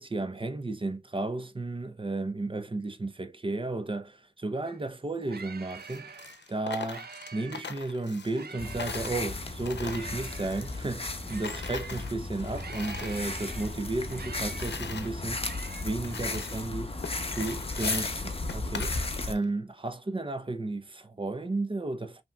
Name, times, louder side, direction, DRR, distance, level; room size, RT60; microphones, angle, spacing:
voice 1, 0.0-6.2 6.5-15.5 15.8-17.0 17.3-22.2, right 2 dB, 30° right, 0.8 m, -33 dB
sound 1, 4.7-4.8 5.0-7.8 8.2-12.1 12.5-15.8, right 5 dB, 60° right, 0.6 m, -46 dB
Coin (dropping), 5.7-8.5 8.8-11.2 11.4-13.2 13.6-15.1 15.6-15.7 16.0-16.7 17.0-19.4, left 5 dB, 80° left, 0.7 m, -41 dB
sound 2, 8.6-19.3, left 2 dB, 35° left, 0.9 m, -35 dB
5.4 x 3.0 x 2.4 m
wide cardioid pair, 50°, 18 cm